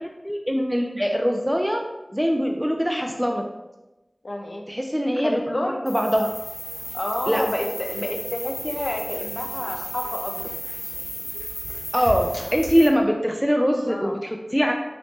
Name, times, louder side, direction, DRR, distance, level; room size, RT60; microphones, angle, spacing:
voice 1, 0.2-1.8 2.1-3.4 4.7-6.3 7.3-7.5 11.9-14.7, equal, ahead, 2 dB, 0.3 m, -22 dB
voice 2, 4.2-4.7 5.1-5.8 6.9-10.5 13.9-14.2, left 1 dB, 65° left, 2 dB, 0.5 m, -29 dB
sound 1, 5.9-12.9, left 1 dB, 85° left, 0.9 m, -34 dB
3.0 x 2.6 x 3.4 m, 1.0 s
wide cardioid pair, 40°, 0 cm